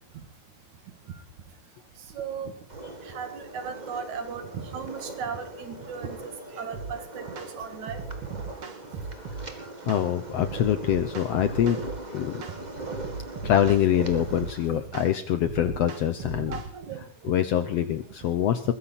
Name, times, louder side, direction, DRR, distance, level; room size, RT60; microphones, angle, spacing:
voice 1, 0.9-1.2 1.9-2.6 3.0-8.5 8.9-9.1 9.6-9.9 12.2-13.5 14.7-14.8 16.5-17.3, right 6 dB, 65° right, 8 dB, 3.2 m, -38 dB
sound 1, 2.7-14.7, right 2 dB, 20° right, 1.4 m, -41 dB
sound 2, 6.7-6.9 7.4-7.5 7.9-9.5 9.9-10.1 10.4-12.0 12.4-12.6 12.9-14.5 14.9-15.1 15.4-16.7, right 4 dB, 50° right, 2.4 m, -37 dB
voice 2, 9.1-9.4 9.9-11.8 12.1-12.4 13.4-16.6 17.2-18.7, left 10 dB, 70° left, 11 dB, 1.6 m, -25 dB
21.0 x 15.5 x 4.2 m, 0.41 s
omnidirectional pair, 3.7 m